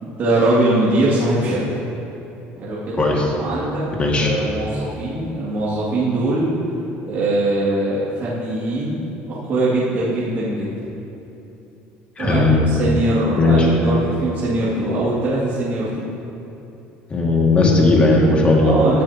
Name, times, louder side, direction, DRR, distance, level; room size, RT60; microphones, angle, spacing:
voice 1, 0.0-1.8 2.6-3.1 3.4-3.8 4.1-6.5 7.1-9.0 9.3-10.7 12.2-16.1 18.6-19.0, right 1 dB, 45° right, -8 dB, 2.4 m, -21 dB
voice 2, 3.0-3.3 4.0-4.3 12.2-12.6 13.4-13.7 17.1-18.9, left 2 dB, 25° left, -2 dB, 2.0 m, -16 dB
16.5 x 10.5 x 2.9 m, 2.9 s
cardioid pair, 125°, 4 cm